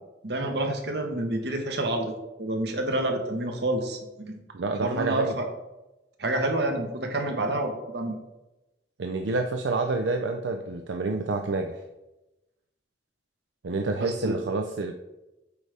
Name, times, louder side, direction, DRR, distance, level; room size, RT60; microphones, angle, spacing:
voice 1, 0.2-2.1 2.4-4.4 4.8-5.5 6.2-8.2 14.0-14.4, right 1 dB, 65° right, 4 dB, 1.1 m, -28 dB
voice 2, 4.5-5.3 9.0-11.8 13.6-14.9, right 3 dB, 80° right, 5 dB, 0.5 m, -28 dB
8.3 x 3.4 x 5.0 m, 0.99 s
head